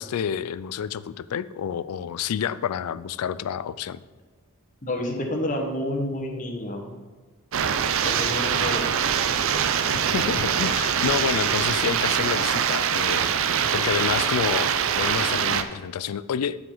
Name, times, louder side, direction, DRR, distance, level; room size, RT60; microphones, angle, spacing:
voice 1, 0.0-4.0 10.1-13.4 13.7-14.7 15.0-16.6, left 8 dB, 85° left, 16 dB, 0.4 m, -29 dB
voice 2, 4.8-6.8 8.0-8.9, left 1 dB, 35° left, 2 dB, 1.3 m, -29 dB
sound 1, 7.5-15.6, right 8 dB, 60° right, 0.5 m, -23 dB
13.0 x 4.9 x 3.9 m, 1.4 s
head